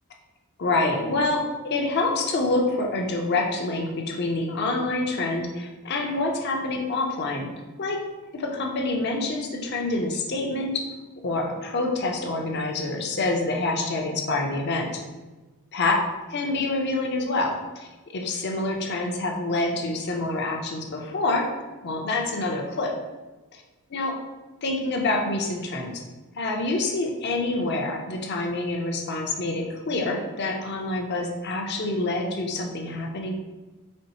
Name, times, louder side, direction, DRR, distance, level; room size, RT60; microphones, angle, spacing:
voice 1, 0.6-7.5 7.8-8.0 8.3-10.9 11.2-15.0 15.7-16.0 16.3-21.5 21.8-23.0 23.5-23.6 23.9-24.2 24.6-26.0 26.4-33.3, left 2 dB, 50° left, 2 dB, 0.5 m, -27 dB
4.3 x 3.0 x 2.8 m, 1.2 s
head